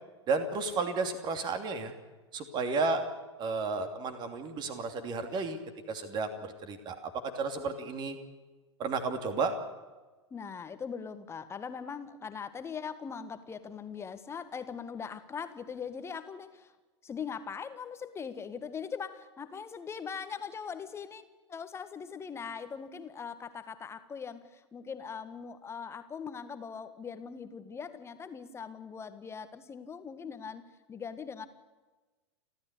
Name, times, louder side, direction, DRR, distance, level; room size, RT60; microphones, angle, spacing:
voice 1, 0.3-1.9 2.3-3.0 3.4-5.6 5.9-8.2 8.8-9.5, right 4 dB, 30° right, 7 dB, 2.9 m, -32 dB
voice 2, 10.3-16.7 17.0-21.2 21.5-31.5, left 6 dB, 15° left, 11 dB, 1.6 m, -41 dB
29.5 x 13.0 x 8.4 m, 1.2 s
figure-of-eight pair, 95°, 15 cm